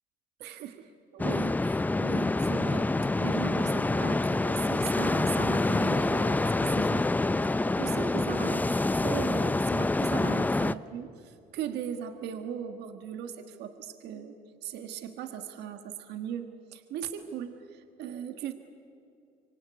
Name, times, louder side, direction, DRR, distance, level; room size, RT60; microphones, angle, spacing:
voice 1, 0.4-2.9 3.2-7.1 7.4-18.5, right 9 dB, 80° right, 7 dB, 1.5 m, -38 dB
sound 1, 1.2-10.7, left 2 dB, 10° left, 0.5 m, -26 dB
25.5 x 25.5 x 8.2 m, 2.8 s
cardioid pair, 110°, 17 cm